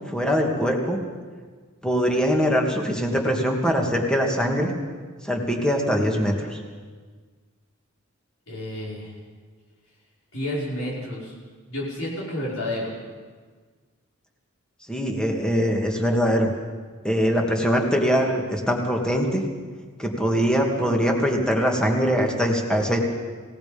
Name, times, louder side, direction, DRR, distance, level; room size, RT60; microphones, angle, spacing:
voice 1, 0.1-1.0 1.8-4.7 5.2-6.6 14.9-16.5 17.0-19.4 20.0-23.0, equal, 5° left, 1 dB, 2.4 m, -22 dB
voice 2, 8.5-9.1 10.3-11.3 11.7-12.9, left 1 dB, 65° left, -6 dB, 5.8 m, -30 dB
27.0 x 18.0 x 5.3 m, 1.5 s
head